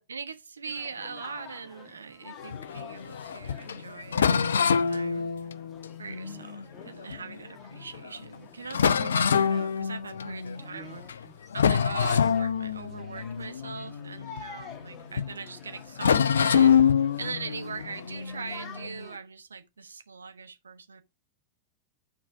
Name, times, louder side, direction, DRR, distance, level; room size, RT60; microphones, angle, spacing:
voice 1, 0.1-5.2 6.0-11.0 11.5-21.0, right 5 dB, 75° right, 1.1 m, -41 dB
sound 1, 0.7-19.2, left 5 dB, 25° left, 1.7 m, -50 dB
sound 2, 2.4-7.4 7.9-8.1 8.3-8.4 8.7-10.6 11.0-11.3 11.5-14.9 15.2-15.3 16.0-19.0, left 7 dB, 65° left, 0.5 m, -26 dB
voice 2, 6.2-6.9 10.5-11.4, equal, ahead, 1.8 m, -51 dB
9.4 x 4.6 x 4.7 m
figure-of-eight pair, 90°, 0 cm